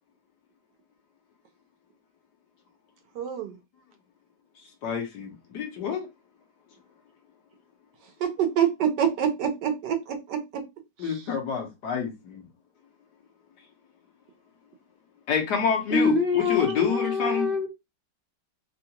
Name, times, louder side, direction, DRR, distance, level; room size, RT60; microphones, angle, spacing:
voice 1, 3.1-3.6 8.2-10.6 11.0-11.3, right 8 dB, 75° right, 1.3 m, -26 dB
voice 2, 4.8-6.1 11.0-12.4 15.3-17.5, left 6 dB, 70° left, 1.4 m, -28 dB
voice 3, 15.9-17.7, left 3 dB, 50° left, 0.6 m, -25 dB
3.5 x 2.3 x 2.8 m
omnidirectional pair, 1.9 m